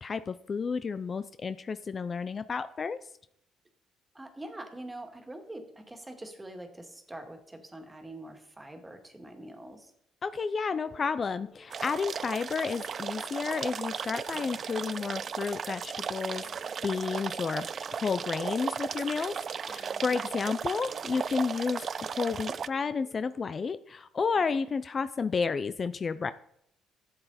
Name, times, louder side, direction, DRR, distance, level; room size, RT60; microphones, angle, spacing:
voice 1, 0.0-3.0 10.2-17.7 17.9-19.3 19.6-26.3, left 5 dB, 40° left, 13 dB, 0.5 m, -31 dB
voice 2, 4.1-9.9 19.7-20.4, right 1 dB, 15° right, 5 dB, 2.1 m, -45 dB
sound 1, 10.8-23.2, left 2 dB, 65° left, 3.7 m, -57 dB
sound 2, 11.7-22.7, right 6 dB, 45° right, 0.4 m, -36 dB
12.0 x 7.9 x 4.2 m, 0.73 s
cardioid pair, 85°, 0 cm